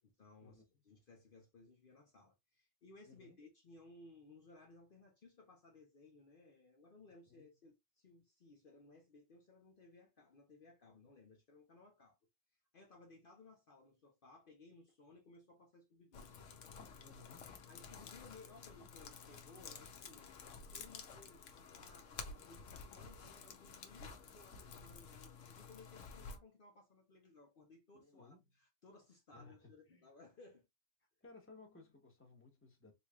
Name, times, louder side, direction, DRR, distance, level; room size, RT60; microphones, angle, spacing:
voice 1, 0.0-12.2 12.5-16.3 17.7-30.6, left 3 dB, 50° left, 0.9 m, -61 dB
voice 2, 3.0-3.4 7.3-7.5 17.0-17.6 27.9-28.4 29.3-29.6 29.9-30.1 31.2-32.9, left 3 dB, 10° left, 1.0 m, -60 dB
sound 1, 16.1-26.4, left 5 dB, 90° left, 1.1 m, -52 dB
3.9 x 3.1 x 2.3 m
omnidirectional pair, 1.2 m